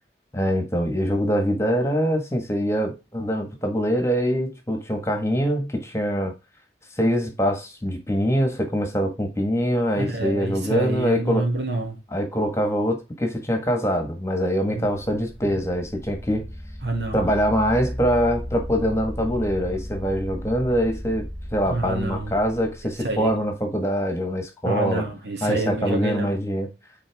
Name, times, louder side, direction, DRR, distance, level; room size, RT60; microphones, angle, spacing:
voice 1, 0.3-6.3 6.9-11.4 12.1-16.4 17.1-21.3 21.5-25.0 25.4-26.7, equal, 15° left, 1.5 m, -24 dB
voice 2, 10.0-12.0 14.7-15.0 16.8-17.3 21.7-22.3 23.0-23.3 24.6-26.4, right 2 dB, 80° right, 2.2 m, -27 dB
sound 1, 14.9-23.5, equal, 20° right, 2.1 m, -35 dB
9.0 x 4.4 x 3.5 m
head